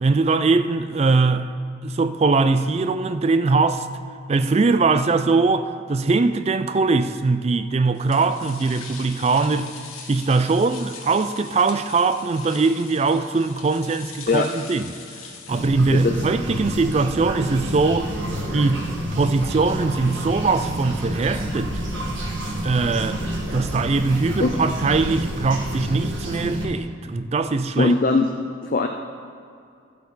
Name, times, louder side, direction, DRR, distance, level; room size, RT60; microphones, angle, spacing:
voice 1, 0.0-1.5 1.8-3.9 4.3-9.7 10.1-15.0 15.5-18.1 18.5-21.7 22.6-27.9, right 3 dB, 30° right, 0.3 m, -21 dB
sound 1, 7.9-15.7, left 5 dB, 85° left, 1.2 m, -41 dB
sound 2, 15.5-26.7, right 1 dB, 70° right, 1.5 m, -29 dB
voice 2, 15.9-16.2 24.4-24.6 27.8-28.3 28.6-28.9, left 3 dB, 40° left, 0.4 m, -20 dB
13.0 x 8.2 x 4.0 m
head